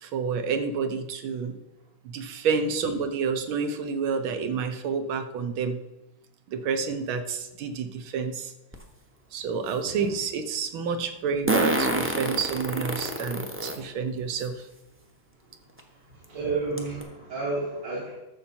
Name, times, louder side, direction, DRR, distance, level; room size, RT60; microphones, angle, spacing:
voice 1, 0.0-1.6 2.0-5.8 6.5-8.5 9.3-14.7, right 5 dB, 90° right, 8 dB, 1.7 m, -29 dB
Fart, 8.7-8.8 11.5-13.8 14.4-14.5 15.8-15.9 16.2-16.3 16.8-17.0, right 1 dB, 15° right, 0.4 m, -26 dB
voice 2, 15.9-18.1, right 3 dB, 60° right, -8 dB, 3.2 m, -31 dB
13.0 x 6.9 x 4.3 m, 0.95 s
omnidirectional pair, 2.2 m